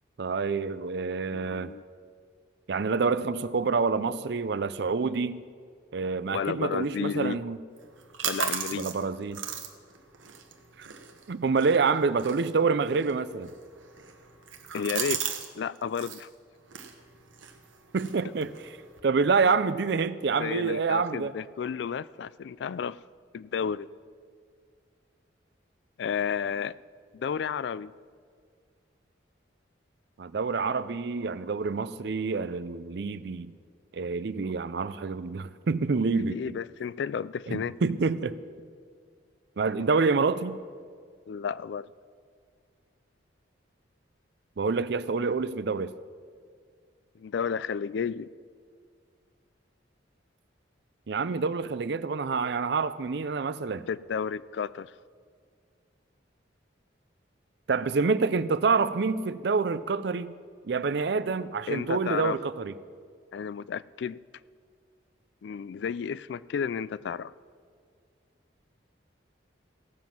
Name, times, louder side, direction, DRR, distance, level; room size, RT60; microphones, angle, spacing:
voice 1, 0.2-1.7 2.7-5.4 5.9-7.6 8.7-9.5 10.8-10.9 11.3-13.5 17.9-18.6 19.0-21.3 30.2-33.5 33.9-36.6 37.5-38.4 39.6-40.6 44.6-45.9 51.1-53.9 57.7-60.3 60.6-62.7, right 4 dB, 60° right, 0.4 m, -27 dB
voice 2, 1.3-1.8 6.3-7.4 8.2-8.9 14.7-15.2 15.5-16.3 18.2-18.3 20.4-23.0 23.3-23.9 26.0-26.7 27.1-27.9 36.2-37.7 41.3-41.9 47.2-48.3 53.9-54.9 61.7-62.4 63.3-64.2 65.4-67.3, left 6 dB, 65° left, 0.3 m, -32 dB
sound 1, 7.8-15.5 15.8-16.2 16.7-19.0, right 8 dB, 90° right, 1.2 m, -37 dB
17.0 x 7.3 x 5.9 m
head